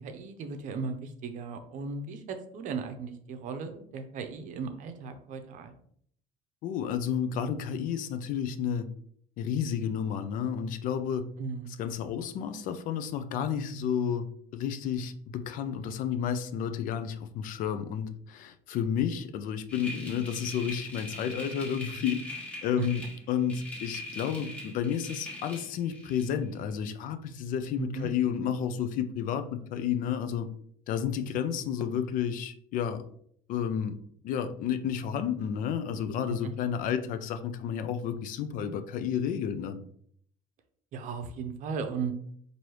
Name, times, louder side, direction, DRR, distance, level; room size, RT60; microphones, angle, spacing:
voice 1, 0.0-5.7 11.4-11.7 22.8-22.9 27.8-28.1 40.9-42.1, right 5 dB, 55° right, 8 dB, 0.6 m, -36 dB
voice 2, 6.6-8.9 9.4-11.2 11.8-14.2 14.5-22.2 22.6-23.0 23.3-30.5 30.9-33.0 33.5-34.0 34.2-39.8, left 8 dB, 60° left, 11 dB, 0.5 m, -31 dB
sound 1, 19.7-26.4, left 1 dB, 10° left, 1.2 m, -42 dB
4.7 x 2.7 x 3.0 m, 0.64 s
cardioid pair, 125°, 15 cm